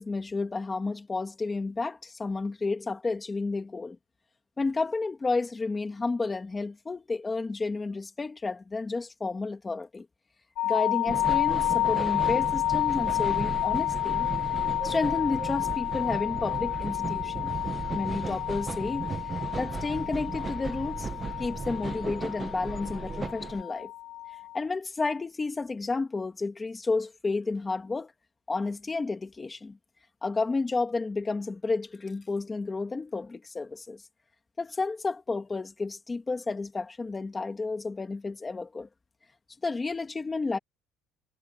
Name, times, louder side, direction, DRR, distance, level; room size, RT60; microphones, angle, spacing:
voice 1, 0.0-4.0 4.6-10.1 10.6-14.3 14.8-17.5 17.9-19.1 19.6-21.1 21.4-23.9 24.5-28.1 28.5-29.8 30.2-34.0 34.6-38.9 39.6-40.6, left 3 dB, 15° left, 2.0 m, -31 dB
sound 1, 10.6-24.6, left 15 dB, 55° left, 5.5 m, -30 dB
sound 2, 11.1-23.6, right 4 dB, 15° right, 1.2 m, -36 dB
cardioid pair, 170°, 0 cm